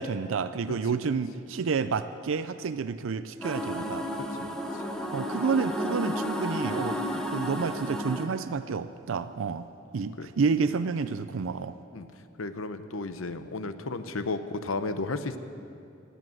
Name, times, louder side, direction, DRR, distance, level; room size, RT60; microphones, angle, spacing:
voice 1, 0.0-4.0 5.1-9.7 9.9-11.7, right 5 dB, 80° right, 12 dB, 0.4 m, -30 dB
sound 1, 3.4-8.3, equal, 5° left, 1.1 m, -32 dB
voice 2, 4.4-4.8 10.2-10.3 11.9-12.1 12.4-15.4, left 3 dB, 90° left, 11 dB, 0.8 m, -33 dB
18.0 x 8.3 x 7.8 m, 2.6 s
head